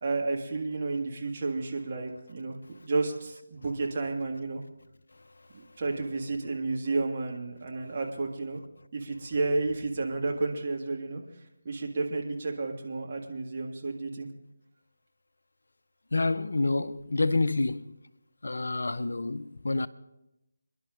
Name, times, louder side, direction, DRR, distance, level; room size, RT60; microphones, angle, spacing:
voice 1, 0.0-2.6 2.8-4.6 5.5-8.6 8.9-11.2 11.6-14.3, right 3 dB, 40° right, 1.8 m, -31 dB
voice 2, 16.1-17.8 18.4-19.9, left 2 dB, 65° left, 0.6 m, -28 dB
27.0 x 11.0 x 2.5 m
figure-of-eight pair, 155°, 0 cm